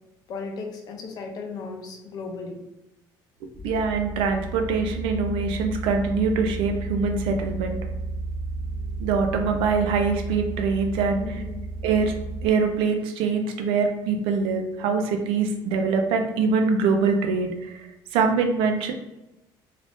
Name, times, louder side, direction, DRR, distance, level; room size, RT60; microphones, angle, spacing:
voice 1, 0.3-2.6 11.2-11.7, left 4 dB, 45° left, 2 dB, 0.5 m, -36 dB
sound 1, 3.5-12.5, right 3 dB, 15° right, 0.4 m, -33 dB
voice 2, 3.6-7.8 9.0-11.2 11.8-12.1 12.4-17.8 18.1-18.9, right 4 dB, 85° right, 4 dB, 0.5 m, -23 dB
2.5 x 2.4 x 3.4 m, 0.97 s
cardioid pair, 165°, 9 cm